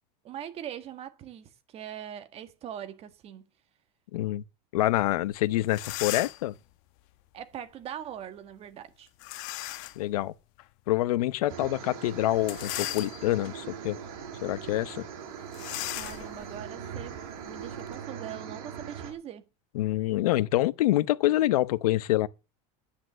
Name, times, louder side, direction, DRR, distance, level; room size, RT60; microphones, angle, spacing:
voice 1, 0.2-3.4 7.3-9.1 15.9-19.4, right 10 dB, 35° right, 1.6 m, -41 dB
voice 2, 4.1-4.4 4.7-6.5 10.0-10.3 10.9-14.0 14.4-15.0 19.7-22.3, left 15 dB, 85° left, 0.9 m, -26 dB
sound 1, 5.3-5.4 5.7-6.5 9.2-10.1 10.6-10.7 12.4-13.5 14.1-14.3 14.5-14.7 15.5-18.0, left 18 dB, 60° left, 1.0 m, -37 dB
sound 2, 11.5-19.1, right 8 dB, 65° right, 6.1 m, -41 dB
10.5 x 10.0 x 7.4 m
supercardioid pair, 145°, 18 cm